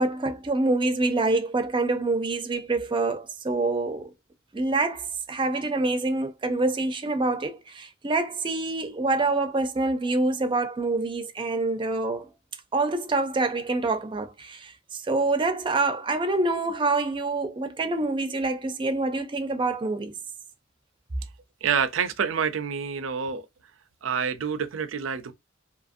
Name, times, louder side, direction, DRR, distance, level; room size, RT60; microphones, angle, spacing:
voice 1, 0.0-4.1 4.5-12.3 12.7-20.1, right 2 dB, 25° right, 0.5 m, -26 dB
voice 2, 21.6-23.4 24.0-25.3, right 6 dB, 80° right, 0.5 m, -27 dB
2.9 x 2.5 x 2.6 m
head